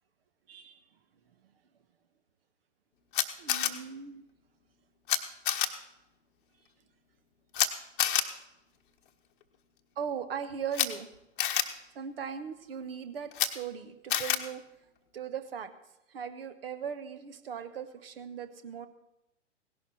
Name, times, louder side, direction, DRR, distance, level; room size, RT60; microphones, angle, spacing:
voice 1, 0.5-0.8 3.4-4.2 10.0-11.1 11.9-14.7 15.1-15.7 16.1-18.9, right 7 dB, 50° right, 11 dB, 1.3 m, -39 dB
Camera, 3.1-3.7 5.1-5.2 5.5-5.7 7.5-7.7 8.0-8.2 10.7-10.9 11.4-11.6 13.3-13.5 14.1-14.4, left 11 dB, 45° left, 1.0 m, -27 dB
17.0 x 11.5 x 4.4 m, 0.90 s
figure-of-eight pair, 110°, 37 cm